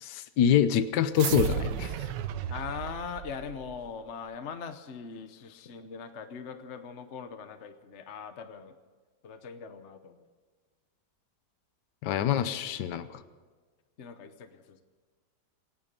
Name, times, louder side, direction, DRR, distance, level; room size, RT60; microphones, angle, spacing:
voice 1, 0.0-1.9 12.0-13.2, left 9 dB, 75° left, 12 dB, 1.4 m, -26 dB
sound 1, 1.2-3.9, right 9 dB, 85° right, 1.5 m, -33 dB
voice 2, 2.5-8.8 9.2-10.3 14.0-14.8, left 6 dB, 50° left, 9 dB, 1.1 m, -41 dB
26.5 x 10.0 x 5.3 m, 1.4 s
omnidirectional pair, 1.9 m